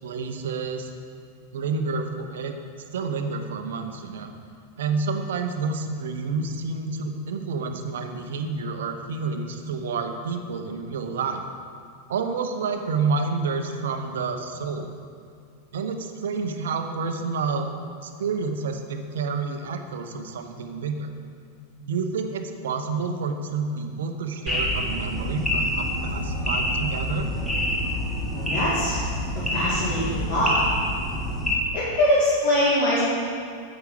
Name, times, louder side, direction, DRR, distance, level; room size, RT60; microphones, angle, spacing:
voice 1, 0.0-0.9 1.5-2.6 2.9-4.3 4.8-11.4 12.1-14.9 15.7-17.7 18.0-21.1 21.8-27.3, right 4 dB, 60° right, 6 dB, 0.8 m, -29 dB
sound 1, 24.5-31.6, equal, 5° left, 1.7 m, -27 dB
voice 2, 28.3-29.0 29.3-30.6 31.7-33.0, left 1 dB, 45° left, -8 dB, 2.4 m, -23 dB
9.1 x 8.0 x 5.2 m, 2.3 s
figure-of-eight pair, 90°, 0 cm